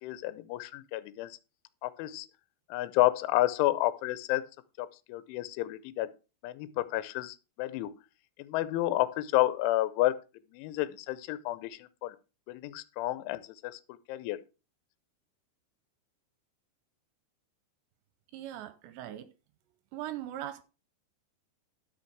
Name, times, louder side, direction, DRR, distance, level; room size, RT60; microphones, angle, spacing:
voice 1, 0.0-1.4 1.8-2.3 2.7-4.4 4.8-6.1 6.4-7.9 8.4-10.1 10.5-12.2 12.5-14.4, left 16 dB, 85° left, 3.2 m, -30 dB
voice 2, 18.3-19.3 19.9-20.6, right 12 dB, 80° right, 2.8 m, -40 dB
11.5 x 6.4 x 4.6 m
omnidirectional pair, 5.4 m